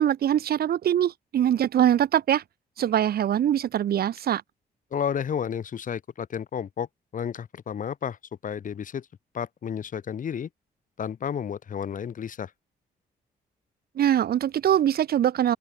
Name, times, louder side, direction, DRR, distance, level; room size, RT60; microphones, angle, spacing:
voice 1, 0.0-2.4 2.8-4.4 14.0-15.6, right 10 dB, 65° right, 1.6 m, -23 dB
voice 2, 4.9-6.9 7.1-9.1 9.3-10.5 11.0-12.5, left 8 dB, 50° left, 4.1 m, -31 dB
open air
cardioid pair, 140°, 17 cm